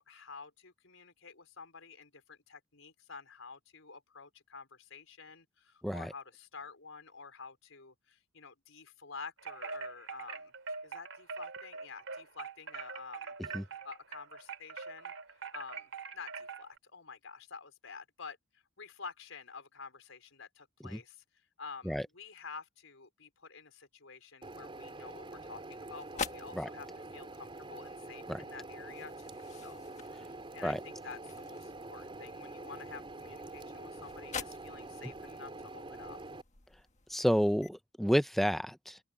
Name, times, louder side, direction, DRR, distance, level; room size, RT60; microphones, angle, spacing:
voice 1, 0.0-10.5 10.8-13.3 13.8-21.2 21.6-36.2, left 5 dB, 80° left, 4.5 m, -50 dB
Wind chime, 9.4-16.8, right 5 dB, 75° right, 3.3 m, -43 dB
sound 1, 24.4-36.4, right 2 dB, 25° right, 3.7 m, -46 dB
sound 2, 25.2-37.7, left 5 dB, 35° left, 1.5 m, -48 dB
voice 2, 37.1-39.0, equal, ahead, 0.7 m, -30 dB
open air
head